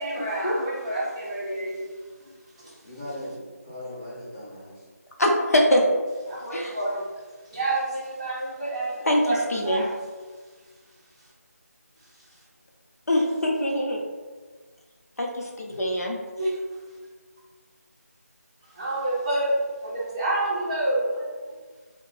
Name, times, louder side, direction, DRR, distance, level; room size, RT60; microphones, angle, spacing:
voice 1, 0.0-1.9 2.6-2.8 6.3-7.0 7.5-9.9 16.4-16.6 18.7-19.6 19.8-21.6, right 1 dB, 25° right, -7 dB, 0.8 m, -28 dB
voice 2, 2.8-4.9, left 1 dB, 25° left, -11 dB, 1.2 m, -38 dB
voice 3, 5.2-5.8 6.5-6.8 9.0-9.8 13.1-14.0 15.2-16.2, left 1 dB, 65° left, -1 dB, 0.8 m, -23 dB
2.8 x 2.3 x 3.8 m, 1.4 s
figure-of-eight pair, 175°, 9 cm